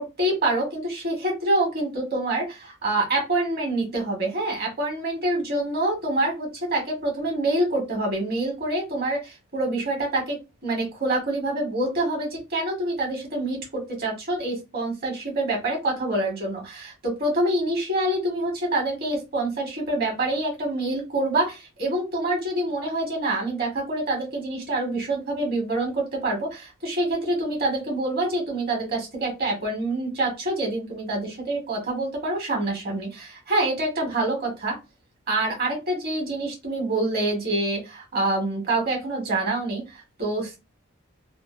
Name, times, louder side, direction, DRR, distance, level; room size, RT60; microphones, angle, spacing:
voice 1, 0.0-10.4 10.6-34.8 35.3-40.6, right 2 dB, 45° right, 1 dB, 1.3 m, -26 dB
2.8 x 2.3 x 2.4 m, 0.26 s
head